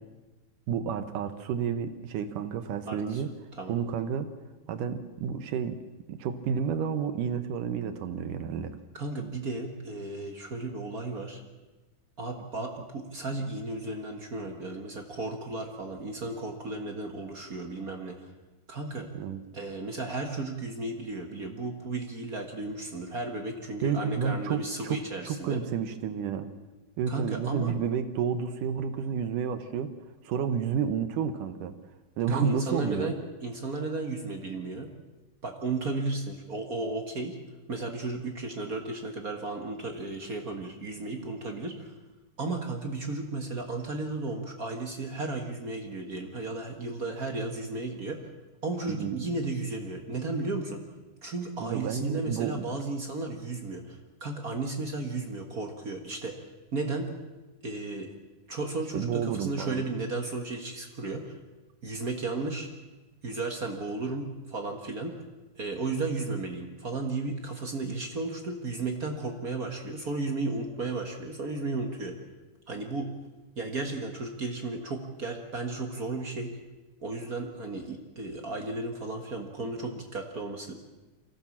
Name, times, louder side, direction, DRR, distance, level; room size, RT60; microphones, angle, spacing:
voice 1, 0.7-3.3 3.7-4.3 4.7-5.8 6.1-8.8 19.1-19.4 23.8-26.5 27.0-29.9 30.2-31.7 32.2-33.1 48.9-49.2 51.6-52.7 58.9-59.9, right 7 dB, 70° right, 10 dB, 2.4 m, -30 dB
voice 2, 2.8-3.2 3.5-3.7 8.9-11.4 12.2-18.3 18.7-19.1 19.5-25.6 27.1-27.7 32.3-33.1 33.4-34.9 35.4-37.4 37.7-41.9 42.4-48.3 48.6-50.8 51.2-56.3 56.7-57.1 57.6-58.1 58.5-61.4 61.8-62.7 63.2-65.2 65.5-72.1 72.7-73.1 73.5-76.5 77.0-80.7, right 3 dB, 50° right, 3 dB, 1.1 m, -34 dB
24.0 x 16.5 x 7.3 m, 1.2 s
omnidirectional pair, 4.0 m